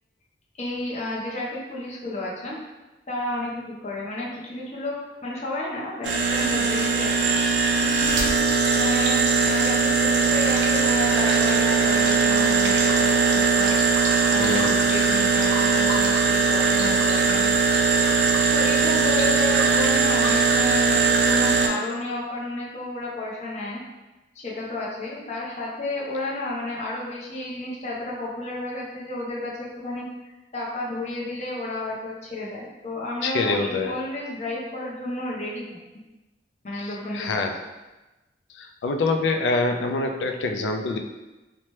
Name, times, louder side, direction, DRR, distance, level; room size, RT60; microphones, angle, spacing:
voice 1, 0.6-2.6 3.1-7.1 7.4-8.4 8.8-13.7 14.3-17.5 18.5-23.8 24.3-30.0 30.5-35.6 36.6-37.4, left 1 dB, 40° left, -4 dB, 0.6 m, -32 dB
sound 1, 6.0-21.7, right 4 dB, 85° right, 0.4 m, -20 dB
voice 2, 14.4-14.8 33.2-34.0 37.1-37.5 38.6-41.0, left 3 dB, 90° left, 4 dB, 0.3 m, -25 dB
2.9 x 2.1 x 3.1 m, 1.1 s
head